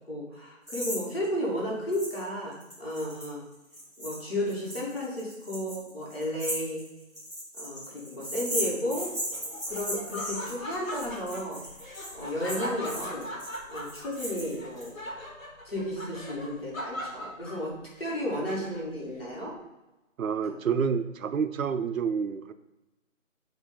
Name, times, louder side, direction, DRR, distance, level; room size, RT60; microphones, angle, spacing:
voice 1, 0.1-3.4 4.0-6.8 7.6-11.6 12.1-13.3 13.7-15.0 15.6-17.7 18.0-19.6 20.4-20.5, equal, 45° left, -5 dB, 2.0 m, -33 dB
sound 1, 0.7-1.0 1.2-1.3 1.9-2.2 2.5-14.9, equal, 5° right, 1.4 m, -37 dB
Laughter, 8.9-19.0, left 1 dB, 80° left, 1.4 m, -40 dB
voice 2, 20.2-22.5, right 6 dB, 85° right, 9 dB, 0.6 m, -28 dB
7.2 x 2.7 x 5.6 m, 1.0 s
figure-of-eight pair, 175°, 40 cm